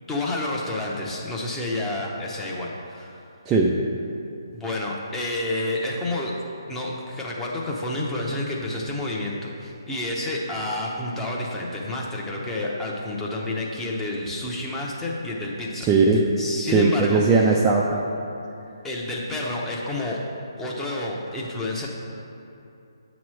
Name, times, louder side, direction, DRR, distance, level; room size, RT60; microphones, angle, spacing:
voice 1, 0.1-3.2 4.5-6.4 6.7-15.9 16.4-17.2 18.8-20.2 20.6-21.9, left 2 dB, 10° left, -3 dB, 0.7 m, -29 dB
voice 2, 15.8-16.2 16.7-18.0, right 4 dB, 15° right, -2 dB, 0.4 m, -19 dB
8.3 x 3.0 x 6.2 m, 2.8 s
figure-of-eight pair, 150°, 2 cm